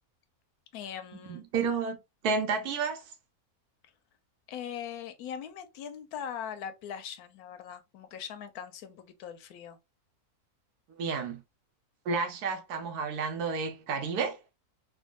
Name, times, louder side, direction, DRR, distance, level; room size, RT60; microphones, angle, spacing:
voice 1, 0.7-1.4 4.5-9.8, left 8 dB, 80° left, 1.1 m, -41 dB
voice 2, 1.3-2.0 2.2-3.1 11.0-11.4 12.0-14.4, right 5 dB, 90° right, 1.2 m, -31 dB
3.5 x 2.3 x 2.3 m
omnidirectional pair, 1.6 m